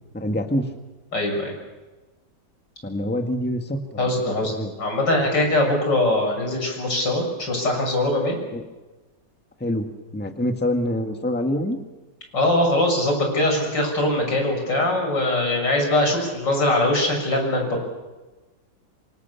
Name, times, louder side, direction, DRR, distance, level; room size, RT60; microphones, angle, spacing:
voice 1, 0.1-0.7 2.8-4.1 4.4-4.7 8.5-8.6 9.6-9.9 10.1-11.8, left 1 dB, 5° left, 5 dB, 1.7 m, -25 dB
voice 2, 1.1-1.5 4.0-4.5 4.8-8.4 12.3-17.8, left 1 dB, 85° left, 2 dB, 7.2 m, -22 dB
26.5 x 26.5 x 7.1 m, 1.2 s
omnidirectional pair, 1.9 m